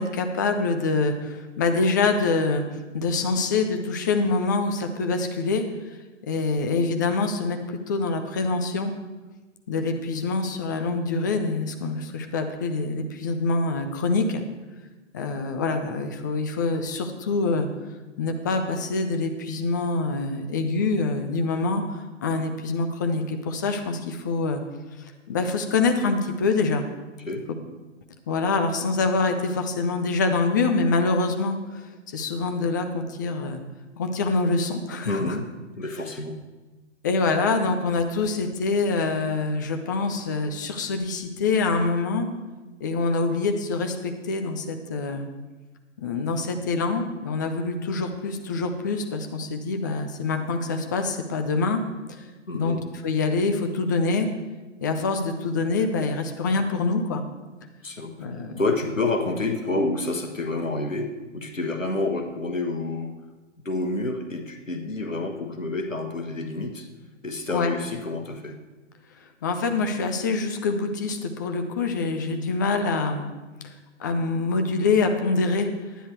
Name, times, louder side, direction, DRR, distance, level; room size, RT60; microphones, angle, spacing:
voice 1, 0.0-2.6 2.9-5.6 6.3-8.9 9.7-14.4 15.1-17.7 18.2-24.6 25.3-26.8 28.3-33.6 34.0-35.3 37.0-42.3 42.8-45.3 46.0-51.8 52.5-52.8 53.0-54.3 54.8-57.2 58.2-58.6 67.5-67.7 69.4-73.3 74.0-75.7, left 3 dB, 15° left, 6 dB, 0.4 m, -25 dB
voice 2, 35.0-35.5 35.8-36.4 52.5-52.8 57.8-58.1 58.6-63.1 63.6-66.9 67.2-68.6, left 2 dB, 85° left, 4 dB, 1.5 m, -28 dB
10.0 x 9.5 x 4.7 m, 1.2 s
figure-of-eight pair, 125°, 38 cm